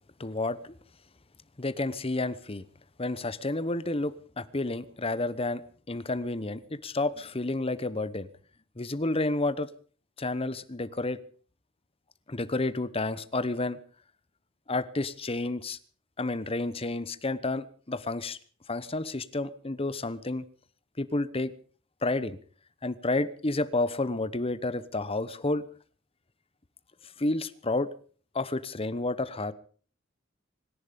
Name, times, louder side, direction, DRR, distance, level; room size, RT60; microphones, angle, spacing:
voice 1, 0.2-0.7 1.6-2.6 3.0-5.6 5.9-8.3 8.8-9.7 10.2-11.2 12.3-13.8 14.7-15.8 16.2-18.4 18.7-20.4 21.0-21.5 22.0-22.4 22.8-25.6 27.2-27.9 28.3-29.5, left 2 dB, 30° left, 15 dB, 1.0 m, -30 dB
25.0 x 11.0 x 5.2 m, 0.43 s
head